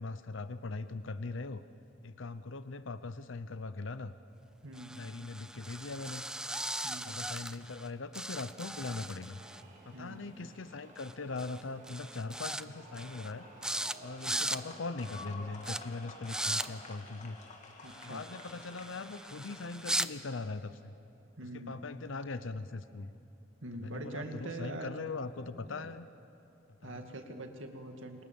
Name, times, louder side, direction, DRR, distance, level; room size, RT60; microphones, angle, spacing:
voice 1, 0.0-1.6 2.0-4.1 4.9-6.2 7.0-9.4 9.8-13.5 14.0-17.4 18.0-20.9 21.5-23.1 23.7-26.1 26.8-27.1, left 3 dB, 70° left, 12 dB, 0.8 m, -40 dB
voice 2, 4.6-5.0 6.8-7.1 9.9-10.2 14.3-14.6 17.8-18.2 21.4-21.8 23.6-24.9 25.7-25.9 26.8-28.2, right 1 dB, 70° right, 4 dB, 2.4 m, -44 dB
sound 1, 4.8-7.9 8.1-9.6 11.0-11.1 11.4-11.6 11.9-12.6 12.9-13.3 13.6-13.9 14.2-14.6 15.0-15.2 15.6-15.8 16.2-16.7 17.9-20.1, right 1 dB, 5° right, 0.6 m, -38 dB
sound 2, 8.3-14.5, right 2 dB, 40° right, 4.0 m, -57 dB
sound 3, 12.7-20.1, left 3 dB, 40° left, 2.8 m, -51 dB
27.5 x 27.5 x 7.2 m, 2.8 s
head